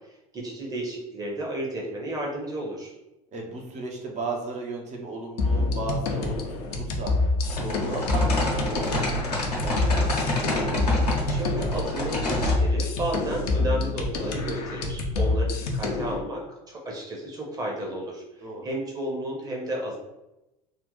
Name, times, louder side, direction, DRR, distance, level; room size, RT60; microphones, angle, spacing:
voice 1, 0.3-2.9 11.3-20.0, right 1 dB, 20° right, -2 dB, 1.1 m, -32 dB
voice 2, 3.3-7.1 7.5-10.7 15.2-15.5 18.4-18.8, right 3 dB, 35° right, 0 dB, 1.0 m, -35 dB
sound 1, 5.4-16.2, left 3 dB, 50° left, 0.7 m, -27 dB
sound 2, 7.4-12.5, left 1 dB, 80° left, 1.1 m, -28 dB
3.6 x 2.5 x 3.9 m, 0.94 s
figure-of-eight pair, 70°, 20 cm